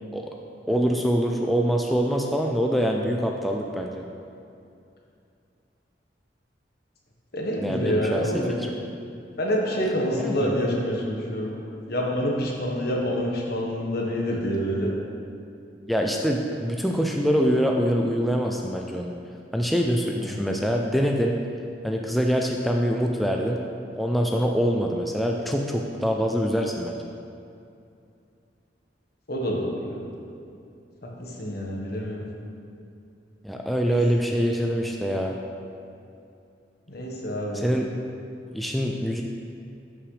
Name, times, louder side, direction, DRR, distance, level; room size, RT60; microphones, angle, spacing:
voice 1, 0.7-4.0 7.6-8.2 10.2-10.5 15.9-19.2 19.5-21.4 21.8-23.6 24.0-27.0 33.4-35.4 37.5-37.9 38.5-39.2, equal, ahead, 0 dB, 0.4 m, -24 dB
voice 2, 7.3-8.5 9.4-11.5 11.9-14.9 20.2-20.5 29.3-30.0 31.2-32.2 33.8-34.0 36.9-37.6, equal, 60° left, -2 dB, 1.3 m, -27 dB
11.0 x 5.9 x 3.3 m, 2.6 s
head